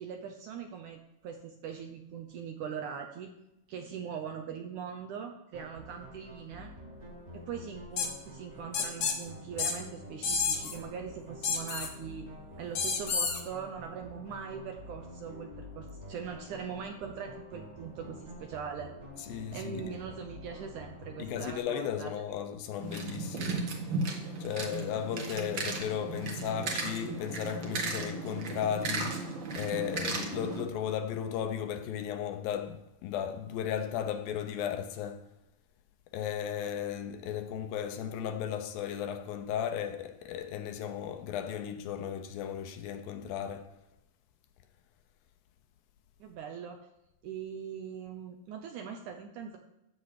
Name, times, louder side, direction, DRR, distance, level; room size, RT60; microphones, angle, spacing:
voice 1, 0.0-3.3 3.7-6.7 7.3-12.3 12.6-18.9 19.5-22.1 46.2-46.8 47.2-49.6, right 7 dB, 70° right, 1.9 m, -41 dB
sound 1, 5.5-21.6, equal, 25° right, 1.6 m, -48 dB
sound 2, 8.0-8.1 8.7-9.2 9.6-9.7 10.2-10.8 11.4-11.9 12.8-13.4, left 5 dB, 60° left, 1.5 m, -30 dB
voice 2, 19.3-20.0 21.2-23.7 24.4-29.3 29.6-35.2 36.1-43.8, left 9 dB, 75° left, 2.4 m, -35 dB
sound 3, 22.8-30.6, right 3 dB, 55° right, 1.3 m, -35 dB
14.0 x 8.3 x 4.9 m
omnidirectional pair, 4.4 m